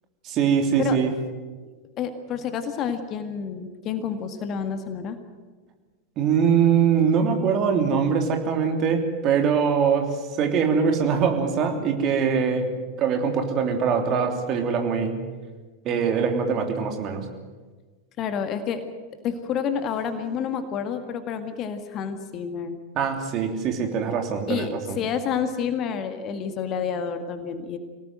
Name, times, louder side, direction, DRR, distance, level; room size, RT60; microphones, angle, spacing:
voice 1, 0.2-1.1 6.2-10.1 10.4-15.1 15.8-17.2 22.9-25.0, right 6 dB, 35° right, 4 dB, 3.2 m, -22 dB
voice 2, 2.0-5.2 18.2-18.8 19.2-22.8 24.5-27.8, left 7 dB, 35° left, 8 dB, 1.9 m, -29 dB
25.0 x 18.0 x 7.8 m, 1.4 s
figure-of-eight pair, 90°, 0 cm